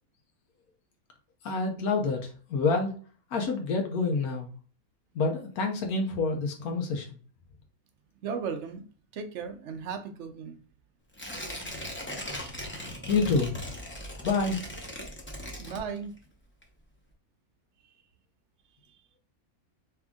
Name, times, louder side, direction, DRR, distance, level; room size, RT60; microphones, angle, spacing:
voice 1, 1.4-2.9 3.3-4.5 5.1-7.2 13.1-13.7 14.2-14.6, left 4 dB, 85° left, 1.2 m, -27 dB
voice 2, 8.2-8.8 9.1-10.6 15.6-16.1 18.9-19.0, right 6 dB, 60° right, 0.9 m, -36 dB
Tearing, 11.1-16.3 16.6-16.7, equal, 10° left, 0.6 m, -39 dB
3.6 x 3.4 x 3.6 m
omnidirectional pair, 1.5 m